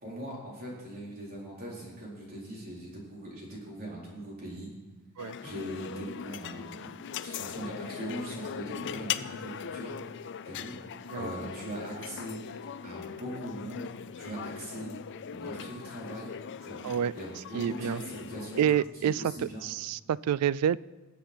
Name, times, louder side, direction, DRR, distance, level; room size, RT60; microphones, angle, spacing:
voice 1, 0.0-4.7 5.4-9.9 10.4-14.9 15.3-16.3 16.6-18.7 18.9-19.6, right 1 dB, 45° right, -4 dB, 4.1 m, -41 dB
sound 1, 5.2-18.9, left 8 dB, 55° left, 0.4 m, -40 dB
voice 2, 17.5-18.0 18.6-19.2 19.6-20.8, right 9 dB, 90° right, 21 dB, 0.3 m, -28 dB
20.0 x 7.6 x 4.4 m, 1.2 s
head